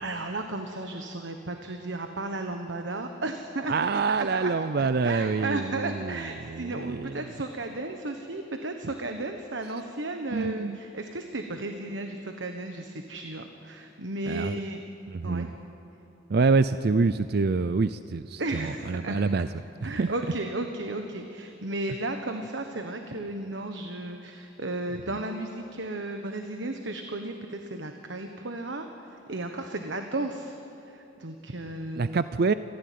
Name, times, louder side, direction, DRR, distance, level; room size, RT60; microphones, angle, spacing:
voice 1, 0.0-3.7 4.1-4.5 4.8-14.8 15.2-15.5 18.4-19.2 19.8-32.2, right 2 dB, 70° right, 5 dB, 1.3 m, -34 dB
voice 2, 3.7-6.2 6.5-7.2 10.3-10.8 14.3-14.6 15.1-15.5 16.3-19.5 19.8-20.1 32.0-32.5, right 4 dB, 55° right, 13 dB, 0.5 m, -26 dB
28.5 x 15.5 x 9.4 m, 3.0 s
head